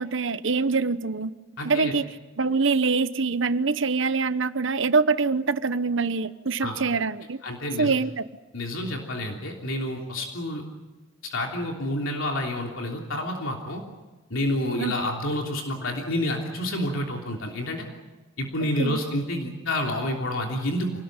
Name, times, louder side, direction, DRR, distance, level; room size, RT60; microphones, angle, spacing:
voice 1, 0.0-1.3 1.6-2.1 2.4-7.4 7.8-8.2 14.8-14.9 18.6-19.0, right 4 dB, 60° right, 13 dB, 1.0 m, -24 dB
voice 2, 1.6-1.9 6.6-6.8 7.4-7.9 8.5-10.6 11.2-13.8 14.3-17.9 18.4-20.9, left 1 dB, 70° left, 1 dB, 3.3 m, -29 dB
27.5 x 19.0 x 9.0 m, 1.2 s
head